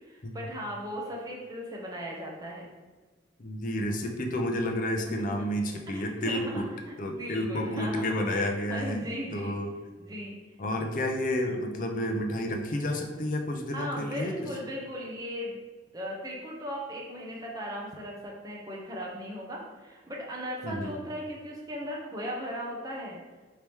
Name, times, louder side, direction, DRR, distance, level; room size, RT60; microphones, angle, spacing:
voice 1, 0.1-2.7 5.3-5.4 5.9-9.7 10.0-10.4 13.7-15.6 15.9-23.2, equal, 20° right, -2 dB, 0.7 m, -38 dB
voice 2, 3.4-6.7 7.0-9.1 9.3-9.7 10.6-14.5 20.6-21.0, left 1 dB, 45° left, 3 dB, 0.5 m, -30 dB
4.5 x 2.8 x 3.4 m, 1.4 s
head